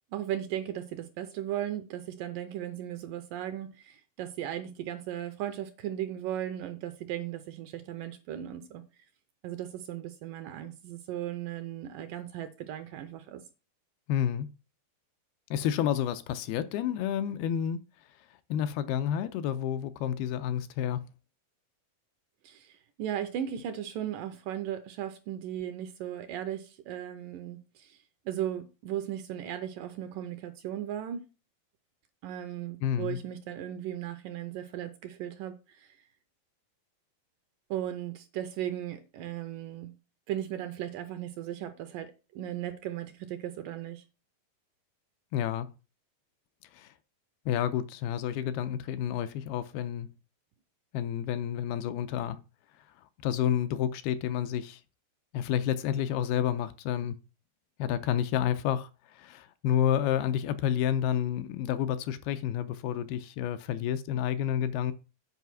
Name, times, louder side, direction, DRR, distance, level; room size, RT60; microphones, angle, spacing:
voice 1, 0.1-8.8 9.4-13.4 22.4-31.2 32.2-36.0 37.7-39.9 40.3-44.0, right 11 dB, 80° right, 2.1 m, -37 dB
voice 2, 14.1-14.5 15.5-17.8 18.5-21.0 32.8-33.2 45.3-45.7 46.7-46.9 47.5-50.1 50.9-52.4 53.2-54.8 55.3-57.2 57.8-58.9 59.2-64.9, left 10 dB, 85° left, 2.6 m, -29 dB
8.2 x 5.0 x 6.0 m
omnidirectional pair, 4.4 m